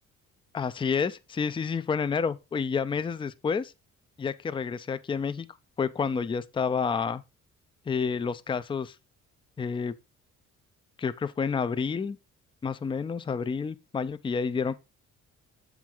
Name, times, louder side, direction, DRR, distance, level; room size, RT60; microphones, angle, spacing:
voice 1, 0.5-3.7 4.2-5.5 5.8-7.2 7.9-9.0 9.6-9.9 11.0-12.2 12.6-14.8, left 6 dB, 15° left, 0.4 m, -29 dB
7.3 x 4.6 x 3.7 m
cardioid pair, 90°, 30 cm